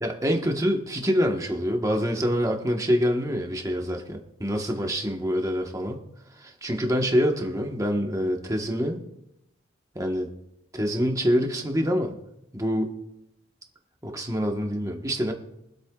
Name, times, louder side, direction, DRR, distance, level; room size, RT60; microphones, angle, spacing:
voice 1, 0.0-6.0 6.3-9.0 9.9-10.3 10.7-12.2 12.5-13.0 14.0-15.3, equal, 15° right, 2 dB, 1.2 m, -26 dB
24.0 x 8.5 x 2.4 m, 0.87 s
head